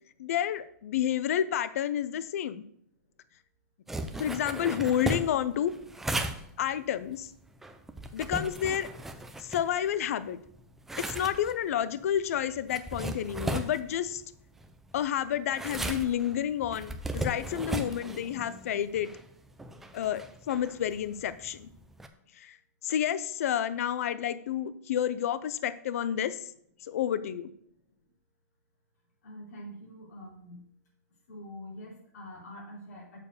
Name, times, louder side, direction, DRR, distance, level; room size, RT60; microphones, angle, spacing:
voice 1, 0.2-2.6 4.2-5.7 6.6-7.3 8.1-8.9 9.4-10.4 11.0-14.2 14.9-19.1 19.9-21.7 22.3-22.6 22.8-26.4 26.8-27.5, left 10 dB, 60° left, 14 dB, 0.5 m, -30 dB
sound 1, 3.9-10.1 10.5-22.1, right 1 dB, 5° right, 0.4 m, -37 dB
voice 2, 29.2-30.6 31.3-33.2, equal, 80° left, -4 dB, 3.6 m, -45 dB
7.0 x 4.7 x 6.6 m, 0.67 s
hypercardioid pair, 165°, 9 cm